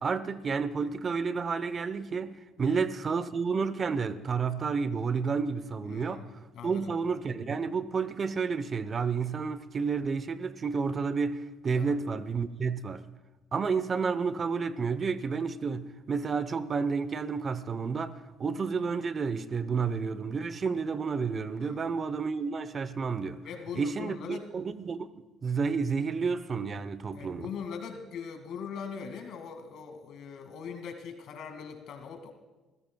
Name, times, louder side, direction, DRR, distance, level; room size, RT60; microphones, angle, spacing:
voice 1, 0.0-6.2 6.6-13.0 13.5-23.4 23.7-25.1 25.4-27.5, right 5 dB, 40° right, 0.8 m, -30 dB
voice 2, 5.9-6.9 11.7-11.9 21.6-21.9 23.4-24.5 27.1-32.3, left 6 dB, 70° left, 2.2 m, -41 dB
27.5 x 15.5 x 2.3 m
supercardioid pair, 75°, 0 cm